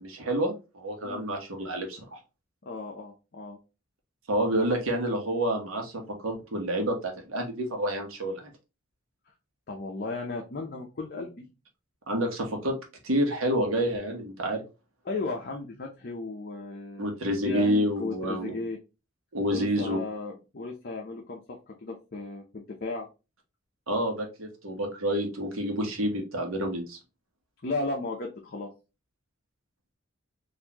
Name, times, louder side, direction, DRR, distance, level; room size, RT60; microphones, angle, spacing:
voice 1, 0.0-2.2 4.3-8.5 12.1-12.7 13.0-14.6 17.0-18.6 19.3-20.0 23.9-27.0, equal, 80° right, 3 dB, 1.1 m, -28 dB
voice 2, 2.6-3.6 9.7-11.5 15.0-17.1 17.4-18.8 19.5-23.1 27.6-28.7, left 3 dB, 50° left, 0 dB, 0.7 m, -35 dB
4.1 x 2.6 x 2.9 m, 0.29 s
head